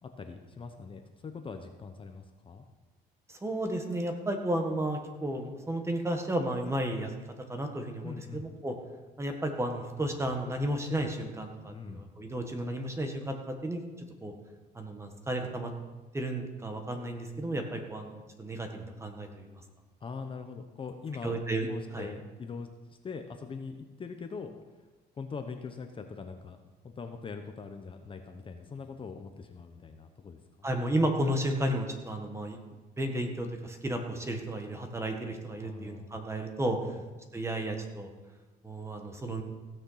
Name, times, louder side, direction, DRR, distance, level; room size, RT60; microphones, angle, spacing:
voice 1, 0.0-2.6 8.0-8.5 11.7-12.1 20.0-21.4 21.7-22.7 23.0-24.5 25.2-26.6 26.8-30.7 35.6-36.2 36.8-37.0, left 5 dB, 30° left, 6 dB, 0.9 m, -42 dB
voice 2, 3.4-7.1 7.5-8.7 9.2-13.8 14.2-14.3 14.7-15.7 16.1-19.6 21.2-21.7 21.9-22.1 30.6-32.6 33.0-36.8 37.3-38.1 38.6-39.4, right 1 dB, 15° right, 4 dB, 1.7 m, -33 dB
16.0 x 6.6 x 5.8 m, 1.2 s
cardioid pair, 110°, 17 cm